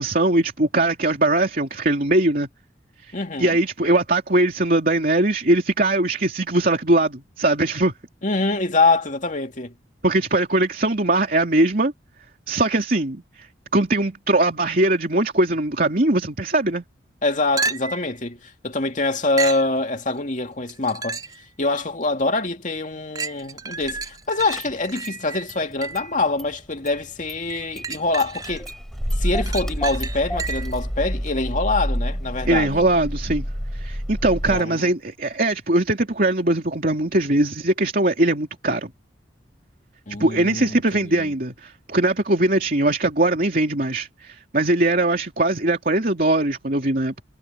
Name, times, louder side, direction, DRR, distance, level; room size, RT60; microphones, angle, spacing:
voice 1, 0.0-2.5 3.0-7.9 10.0-11.9 12.5-13.5 13.7-16.8 32.4-33.4 33.7-38.9 40.2-47.2, right 2 dB, 50° right, 3.0 m, -21 dB
voice 2, 3.1-3.6 8.2-9.7 17.2-21.2 21.6-28.7 29.2-32.8 34.5-34.9 40.1-41.3, left 3 dB, 40° left, 2.4 m, -24 dB
sound 1, 17.6-18.1 19.4-19.7 20.7-21.4 22.0-22.1 23.1-26.1 27.5-28.7 29.1-30.8 34.6-34.7, right 4 dB, 20° right, 3.4 m, -31 dB
Car / Engine starting, 23.8-24.1 24.4-25.2 25.5-26.5 26.8-34.6, equal, ahead, 4.1 m, -29 dB
head